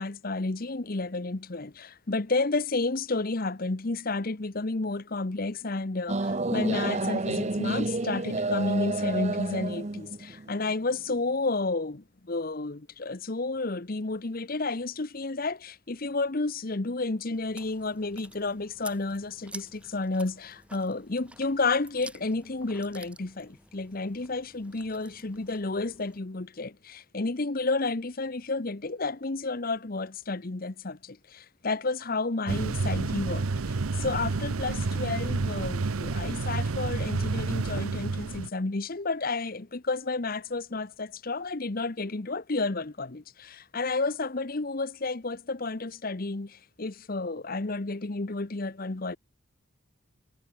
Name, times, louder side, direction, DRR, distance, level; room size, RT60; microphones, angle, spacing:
voice 1, 0.0-49.2, left 3 dB, 45° left, 0.9 m, -31 dB
sound 1, 6.1-11.2, right 2 dB, 30° right, 0.7 m, -30 dB
Chewing mastication, 17.3-26.2, right 2 dB, 5° right, 2.0 m, -50 dB
sound 2, 32.5-38.5, right 3 dB, 90° right, 0.8 m, -30 dB
head